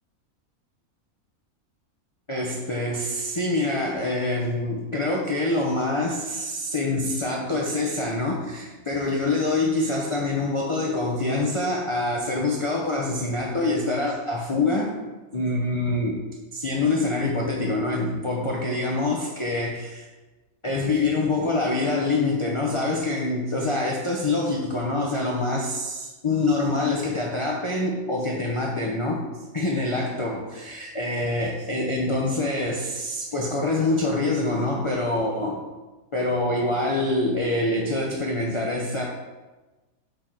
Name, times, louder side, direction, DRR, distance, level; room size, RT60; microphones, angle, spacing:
voice 1, 2.3-14.9 15.3-16.2 16.5-20.1 20.6-29.3 29.5-35.6 36.1-39.0, left 2 dB, 35° left, -2 dB, 0.5 m, -25 dB
6.9 x 3.8 x 4.4 m, 1.2 s
omnidirectional pair, 1.5 m